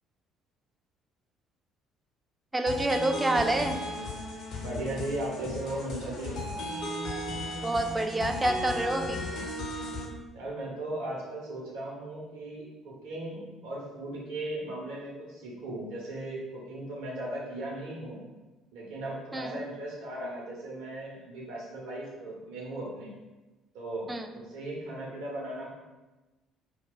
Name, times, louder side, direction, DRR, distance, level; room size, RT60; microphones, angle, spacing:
voice 1, 2.5-3.8 7.6-9.2 19.3-19.6 24.1-24.3, right 2 dB, 15° right, 5 dB, 0.3 m, -27 dB
sound 1, 2.7-10.1, left 1 dB, 55° left, 0.5 m, -35 dB
voice 2, 4.6-6.4 10.3-18.2 18.7-23.1 23.7-25.7, right 1 dB, 65° right, -4 dB, 0.8 m, -37 dB
2.3 x 2.1 x 3.9 m, 1.1 s
figure-of-eight pair, 50°, 0 cm